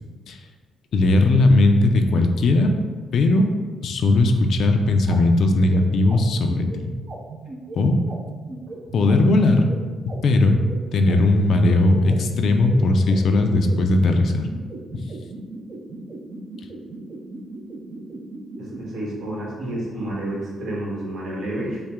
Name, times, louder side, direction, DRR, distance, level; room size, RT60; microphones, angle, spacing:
voice 1, 0.9-2.7 3.1-3.5 3.8-6.9 7.7-8.0 8.9-9.7 10.1-10.6 10.9-14.5 14.9-15.0, left 2 dB, 65° left, 5 dB, 0.4 m, -18 dB
sound 1, 5.1-18.8, right 3 dB, 45° right, 0.6 m, -37 dB
voice 2, 18.5-21.8, right 1 dB, 65° right, -4 dB, 1.5 m, -30 dB
5.5 x 2.1 x 3.6 m, 1.5 s
cardioid pair, 90°, 0 cm